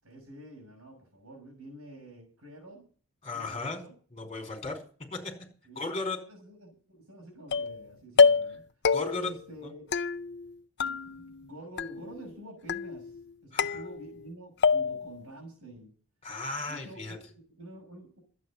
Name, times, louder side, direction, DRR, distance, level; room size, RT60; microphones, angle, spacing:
voice 1, 0.0-2.9 3.3-3.9 5.6-8.6 9.1-9.9 10.8-15.9 16.7-18.2, right 1 dB, 80° right, 0 dB, 6.5 m, -48 dB
voice 2, 3.2-3.8 4.1-4.8 5.1-5.2 5.7-6.2 8.9-9.3 13.5-13.8 16.2-17.2, left 3 dB, 30° left, 3 dB, 4.9 m, -35 dB
sound 1, 7.5-7.8 8.2-8.6 8.8-9.4 9.9-10.5 10.8-11.5 11.8-12.3 12.7-13.2 13.6-14.3 14.6-15.2, left 5 dB, 50° left, 0.5 m, -26 dB
12.5 x 9.1 x 7.4 m, 0.41 s
head